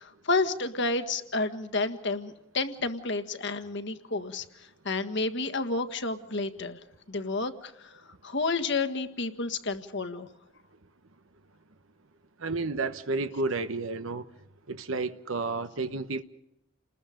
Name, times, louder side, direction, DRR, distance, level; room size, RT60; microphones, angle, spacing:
voice 1, 0.0-6.8 7.1-10.3, left 3 dB, 55° left, 1.6 m, -31 dB
voice 2, 12.4-14.2 14.7-16.2, right 3 dB, 70° right, 1.0 m, -31 dB
30.0 x 20.5 x 5.2 m
head